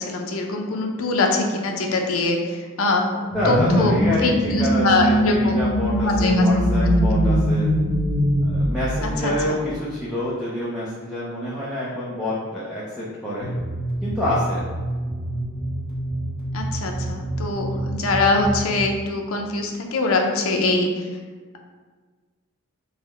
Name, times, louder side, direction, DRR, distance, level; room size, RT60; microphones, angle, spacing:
voice 1, 0.0-3.1 3.5-5.6 6.0-6.5 9.0-9.6 16.5-21.1, left 3 dB, 85° left, 2 dB, 0.5 m, -23 dB
voice 2, 3.3-7.7 8.4-13.5 14.0-14.6, left 1 dB, ahead, -8 dB, 0.5 m, -27 dB
sound 1, 3.3-9.7, equal, 70° right, 1.2 m, -21 dB
sound 2, 13.4-18.7, right 1 dB, 25° left, 0.9 m, -28 dB
3.9 x 2.1 x 4.1 m, 1.4 s
head